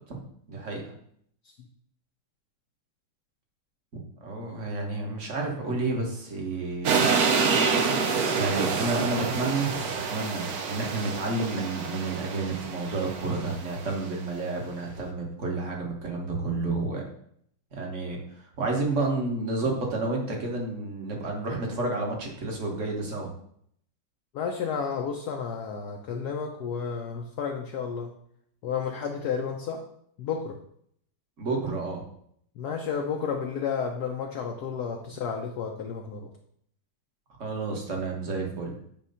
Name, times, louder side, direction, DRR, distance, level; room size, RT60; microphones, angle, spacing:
voice 1, 0.5-0.8 3.9-7.1 8.3-17.0 17.7-18.2 18.6-23.3 31.4-32.1 37.4-38.8, right 3 dB, 40° right, 0 dB, 1.5 m, -30 dB
sound 1, 6.8-14.0, right 5 dB, 60° right, 1.0 m, -27 dB
voice 2, 24.3-28.1 28.6-29.8 30.2-30.6 32.6-36.3, left 6 dB, 65° left, 1 dB, 1.1 m, -31 dB
9.0 x 3.1 x 5.5 m, 0.68 s
omnidirectional pair, 2.2 m